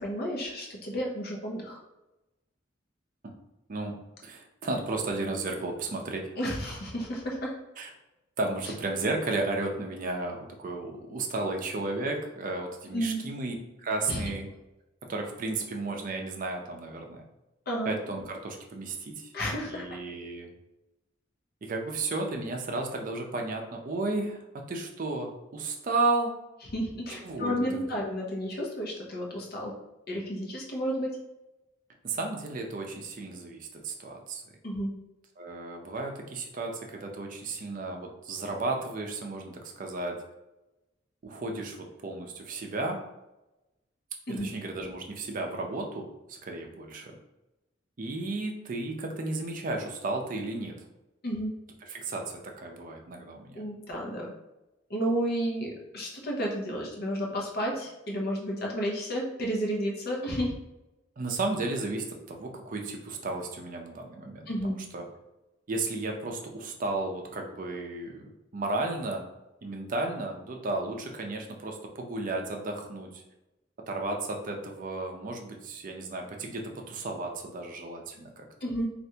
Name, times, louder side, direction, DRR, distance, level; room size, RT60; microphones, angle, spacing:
voice 1, 0.0-1.8 6.4-7.5 12.9-13.3 14.1-14.2 17.7-17.9 19.3-20.0 26.7-29.7 30.1-31.1 34.6-34.9 44.3-44.5 51.2-51.5 53.5-54.3 54.9-60.5 64.5-64.8 78.6-78.9, equal, 55° left, -1 dB, 0.7 m, -31 dB
voice 2, 3.7-6.3 7.8-7.9 8.4-13.5 13.8-14.5 15.1-17.2 17.9-19.3 19.6-20.5 21.6-24.4 24.7-26.3 27.2-27.9 32.0-34.4 35.4-40.2 41.2-43.0 44.4-47.2 48.0-50.7 51.8-53.6 61.2-65.0 65.7-69.3 69.6-73.2 73.9-78.4, right 2 dB, 45° right, 2 dB, 0.5 m, -33 dB
3.3 x 2.5 x 2.7 m, 0.97 s
head